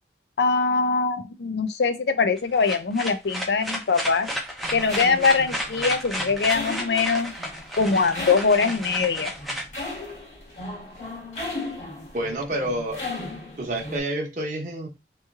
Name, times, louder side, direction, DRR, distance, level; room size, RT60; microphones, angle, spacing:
voice 1, 0.4-4.3 4.7-7.3 7.8-9.3, left 4 dB, 70° left, 9 dB, 0.5 m, -22 dB
sound 1, 2.4-10.4, equal, ahead, 0.6 m, -32 dB
sound 2, 4.6-14.0, left 2 dB, 45° left, 1.3 m, -36 dB
voice 2, 12.1-13.1 13.6-14.9, right 1 dB, 45° right, 0 dB, 0.9 m, -28 dB
3.0 x 2.8 x 3.5 m, 0.25 s
head